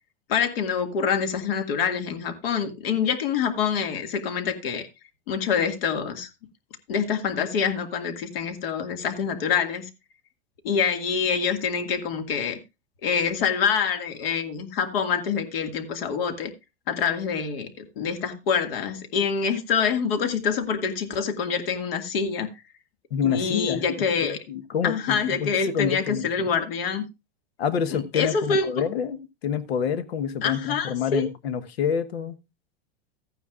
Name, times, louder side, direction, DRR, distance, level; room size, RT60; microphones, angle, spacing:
voice 1, 0.3-4.9 5.3-6.3 6.9-9.9 10.6-12.6 13.0-16.5 16.9-22.5 23.2-24.4 24.8-27.1 27.9-28.7 30.4-31.2, left 6 dB, 70° left, 2.0 m, -26 dB
voice 2, 23.1-23.8 24.2-26.3 27.6-32.3, left 8 dB, 85° left, 1.2 m, -27 dB
14.5 x 9.3 x 2.4 m
supercardioid pair, 145°, 30 cm